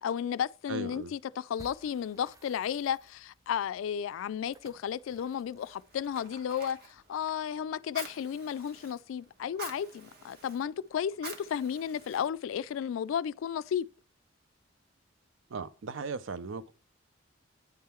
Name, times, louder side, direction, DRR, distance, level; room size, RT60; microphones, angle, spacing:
voice 1, 0.0-13.9, left 8 dB, 80° left, 0.3 m, -33 dB
voice 2, 0.7-1.1 15.5-16.7, right 4 dB, 70° right, 0.5 m, -37 dB
sound 1, 1.5-6.7, right 1 dB, 15° right, 0.6 m, -59 dB
Fire, 5.6-12.8, right 4 dB, 50° right, 1.3 m, -49 dB
9.4 x 3.7 x 4.3 m
head